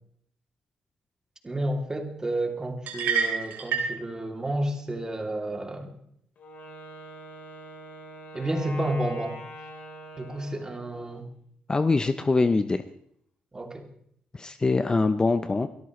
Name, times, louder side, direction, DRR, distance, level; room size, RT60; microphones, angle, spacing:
voice 1, 1.4-5.9 8.3-9.4 10.2-11.2 13.5-13.8, right 1 dB, 20° right, 3 dB, 2.8 m, -31 dB
sound 1, 2.9-4.0, right 6 dB, 85° right, 2.5 m, -27 dB
Wind instrument woodwind instrument, 6.4-11.2, equal, 60° left, 3.9 m, -43 dB
voice 2, 11.7-12.8 14.3-15.7, left 3 dB, 25° left, 11 dB, 0.6 m, -23 dB
23.0 x 13.5 x 3.2 m, 0.68 s
cardioid pair, 80°, 3 cm